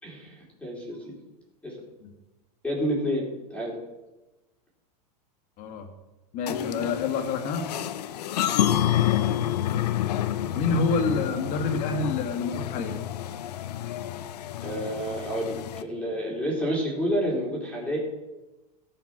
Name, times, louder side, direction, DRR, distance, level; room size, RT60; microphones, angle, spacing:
voice 1, 0.0-1.0 1.6-1.8 2.6-3.8 8.5-8.8 14.6-18.0, equal, 5° left, -3 dB, 3.6 m, -29 dB
voice 2, 5.6-5.9 6.3-7.7 10.5-13.0, left 4 dB, 40° left, 6 dB, 1.7 m, -28 dB
sound 1, 6.5-15.8, left 11 dB, 85° left, 0.8 m, -28 dB
16.0 x 5.9 x 6.0 m, 1.1 s
supercardioid pair, 145°, 20 cm